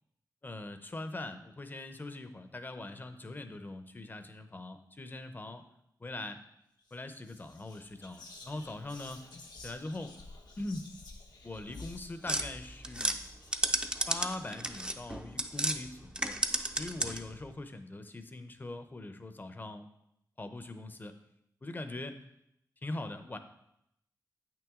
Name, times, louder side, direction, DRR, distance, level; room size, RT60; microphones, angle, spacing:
voice 1, 0.4-5.6 6.0-6.4 6.9-9.2 9.6-10.1 10.6-10.9 11.4-13.2 14.1-16.4 16.8-19.8 20.4-21.1 21.6-22.2 22.8-23.4, left 2 dB, 25° left, 9 dB, 0.7 m, -41 dB
Whispering, 6.8-7.0 7.2-15.3, left 3 dB, 80° left, 1.0 m, -53 dB
sound 1, 12.3-15.8 16.1-17.4, right 1 dB, 15° right, 0.5 m, -32 dB
8.2 x 6.0 x 3.7 m, 0.78 s
wide cardioid pair, 105°, 7 cm